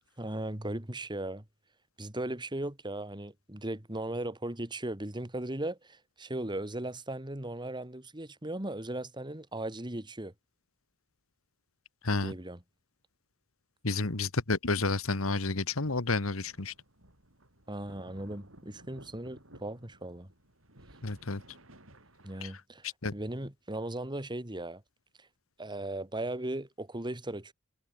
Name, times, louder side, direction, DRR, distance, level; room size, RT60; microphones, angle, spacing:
voice 1, 0.2-1.4 2.0-10.3 12.2-12.6 17.7-20.3 22.2-22.8 23.1-24.8 25.2-25.3 25.6-27.5, right 1 dB, 20° right, 2.5 m, -37 dB
voice 2, 13.8-16.7 21.0-21.4 22.4-22.5 23.0-23.1, left 3 dB, 80° left, 1.7 m, -30 dB
sound 1, 15.8-22.5, right 1 dB, 70° right, 8.0 m, -56 dB
head